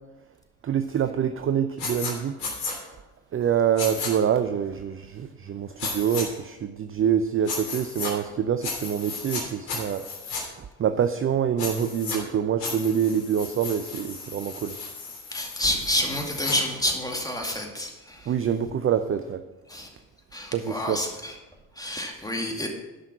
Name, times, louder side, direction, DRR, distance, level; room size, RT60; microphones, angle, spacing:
voice 1, 0.6-2.3 3.3-10.0 10.8-14.7 18.3-19.4 20.5-21.0, right 8 dB, 30° right, 9 dB, 0.6 m, -26 dB
sound 1, 1.8-2.1 2.4-2.7 3.8-4.1 5.8-6.2 7.4-8.1 8.6-9.4 9.7-10.4 11.6-12.2 12.6-16.6, left 4 dB, 75° left, 3.5 m, -34 dB
voice 2, 15.3-18.3 19.7-19.9 20.3-21.4 21.8-22.7, left 1 dB, 10° left, 1 dB, 2.3 m, -29 dB
11.5 x 5.7 x 6.0 m, 1.1 s
hypercardioid pair, 60°, 46 cm